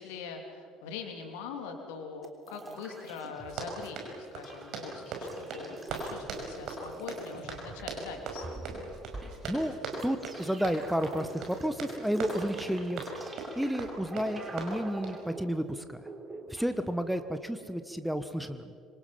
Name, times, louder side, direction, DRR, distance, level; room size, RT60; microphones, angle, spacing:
voice 1, 0.0-8.6, left 5 dB, 65° left, 4 dB, 3.3 m, -42 dB
sound 1, 2.2-3.9 4.1-16.6, right 2 dB, 20° right, 3.7 m, -46 dB
Run, 3.4-15.2, right 4 dB, 55° right, 5.6 m, -40 dB
voice 2, 10.0-13.1 13.5-16.0 16.5-18.6, equal, 5° right, 10 dB, 1.4 m, -31 dB
26.0 x 26.0 x 5.9 m, 2.2 s
figure-of-eight pair, 55°, 0 cm